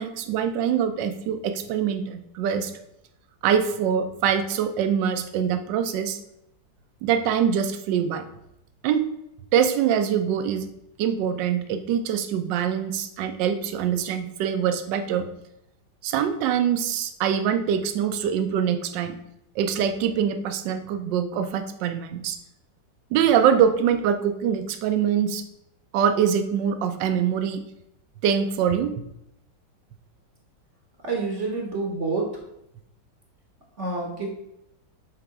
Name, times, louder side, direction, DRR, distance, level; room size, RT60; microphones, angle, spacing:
voice 1, 0.0-2.7 3.4-6.2 7.0-8.2 8.8-9.1 9.5-10.7 11.0-15.3 16.0-19.2 19.6-22.4 23.1-25.4 25.9-27.6 28.2-28.9, right 8 dB, 75° right, 8 dB, 1.3 m, -24 dB
voice 2, 31.0-32.4 33.8-34.3, right 3 dB, 50° right, 0 dB, 1.0 m, -28 dB
6.5 x 3.4 x 4.7 m, 0.81 s
omnidirectional pair, 2.0 m